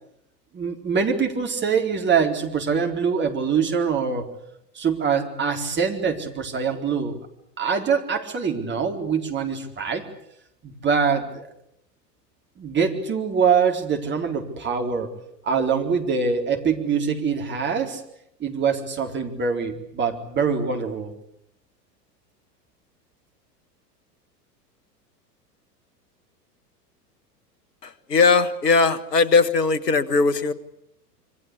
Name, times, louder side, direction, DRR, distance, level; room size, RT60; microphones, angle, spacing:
voice 1, 0.5-4.2 4.8-7.2 7.6-10.0 10.6-11.5 12.6-15.1 15.4-18.0 18.4-21.1, right 6 dB, 20° right, 4 dB, 4.1 m, -24 dB
voice 2, 27.8-30.5, left 4 dB, 75° left, 16 dB, 1.8 m, -19 dB
27.0 x 24.5 x 8.4 m, 0.76 s
figure-of-eight pair, 90°, 49 cm